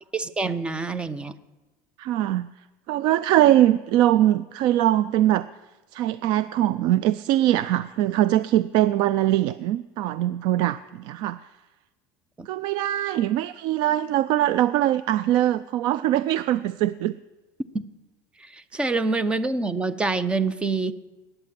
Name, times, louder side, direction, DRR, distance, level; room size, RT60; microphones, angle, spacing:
voice 1, 0.1-1.4 12.4-12.5 17.7-17.9 18.4-20.9, right 3 dB, 10° right, 15 dB, 0.7 m, -26 dB
voice 2, 2.0-2.5 2.9-5.5 5.9-11.4 12.5-17.1 18.7-18.8, right 13 dB, 55° right, 15 dB, 0.4 m, -22 dB
20.0 x 8.9 x 7.6 m, 1.1 s
cardioid pair, 150°, 9 cm